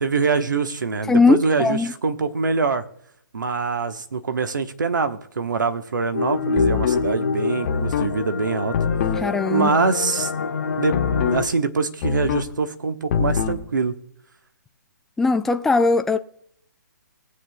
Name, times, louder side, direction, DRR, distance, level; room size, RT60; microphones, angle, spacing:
voice 1, 0.0-2.8 3.3-8.8 9.5-10.3 10.8-14.0, right 4 dB, 75° right, 1.0 m, -24 dB
voice 2, 1.1-1.9 9.2-9.7 15.2-16.2, left 4 dB, 5° left, 0.3 m, -19 dB
sound 1, 6.1-11.4, left 4 dB, 65° left, 1.7 m, -26 dB
sound 2, 6.6-7.1 7.6-8.1 8.7-9.3 10.9-11.5 12.0-12.5 13.1-13.6, left 7 dB, 40° left, 1.1 m, -23 dB
19.5 x 7.7 x 2.2 m
figure-of-eight pair, 135°, 10 cm